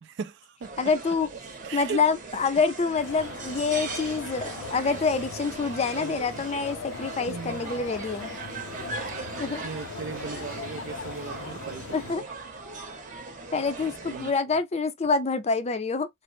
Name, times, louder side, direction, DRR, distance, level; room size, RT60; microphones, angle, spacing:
voice 1, 0.0-0.7 1.2-1.4 1.6-2.0 5.9-6.4 7.3-7.8 9.1-9.2 9.5-12.3 13.8-14.3, right 5 dB, 60° right, 0.4 m, -38 dB
sound 1, 0.6-14.3, right 3 dB, 40° right, 0.8 m, -39 dB
voice 2, 0.8-1.3 1.7-8.3 9.4-9.7 11.9-12.2 13.5-16.1, left 4 dB, 30° left, 0.4 m, -26 dB
sound 2, 3.0-12.1, left 5 dB, 85° left, 0.5 m, -40 dB
3.1 x 2.0 x 3.0 m
head